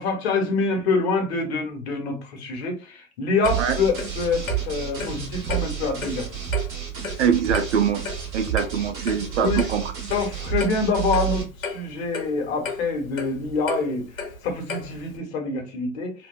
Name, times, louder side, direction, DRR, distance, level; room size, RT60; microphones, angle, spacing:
voice 1, 0.0-6.3 9.4-9.7 10.1-14.1 14.4-16.3, left 3 dB, 50° left, 0.9 m, -26 dB
Clock, 3.4-15.2, left 4 dB, 75° left, 0.7 m, -35 dB
sound 1, 3.4-11.4, right 11 dB, 35° right, 1.4 m, -30 dB
voice 2, 7.2-8.0 8.3-9.9, right 7 dB, 60° right, 0.5 m, -23 dB
2.7 x 2.2 x 2.3 m
figure-of-eight pair, 105°, 41 cm